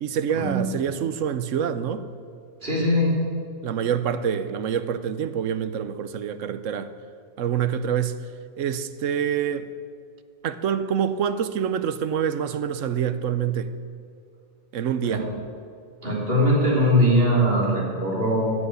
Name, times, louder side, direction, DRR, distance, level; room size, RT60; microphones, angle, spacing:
voice 1, 0.0-2.1 3.6-6.9 7.4-8.2 8.6-9.7 10.4-13.7 14.7-15.2, right 8 dB, 75° right, 12 dB, 1.1 m, -26 dB
voice 2, 2.6-3.1 15.1-15.2 16.0-18.5, equal, 45° right, -4 dB, 3.8 m, -21 dB
15.0 x 8.2 x 8.0 m, 2.4 s
omnidirectional pair, 1.3 m